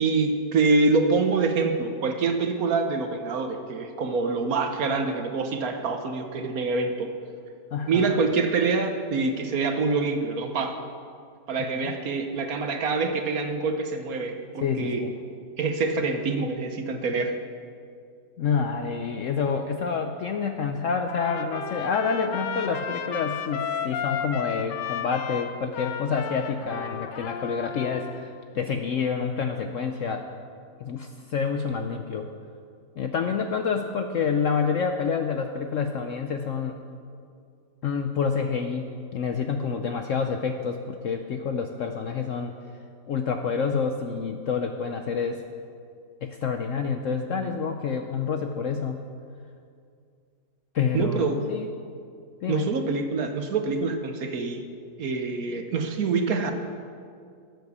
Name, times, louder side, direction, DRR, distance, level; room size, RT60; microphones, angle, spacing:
voice 1, 0.0-7.1 7.9-10.8 11.5-15.0 15.6-17.4 50.9-51.4 52.5-54.7 55.0-56.5, right 4 dB, 60° right, 6 dB, 1.3 m, -25 dB
voice 2, 7.7-8.2 11.7-11.9 14.6-15.1 18.4-30.2 30.8-32.3 33.0-36.8 37.8-38.9 39.1-42.5 43.1-45.4 46.2-49.0 50.7-51.7 52.4-52.7, left 6 dB, 65° left, 6 dB, 0.8 m, -28 dB
Trumpet, 21.1-28.2, left 8 dB, 80° left, 1.3 m, -33 dB
13.0 x 8.0 x 6.9 m, 2.3 s
omnidirectional pair, 1.9 m